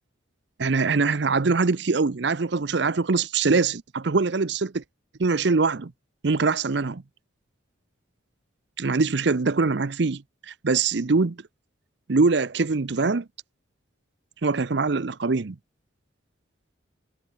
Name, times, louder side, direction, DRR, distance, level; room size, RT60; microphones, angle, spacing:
voice 1, 0.6-4.8 5.2-5.9 6.2-7.0 8.8-11.4 12.1-13.2 14.4-15.6, right 4 dB, 60° right, 0.6 m, -23 dB
head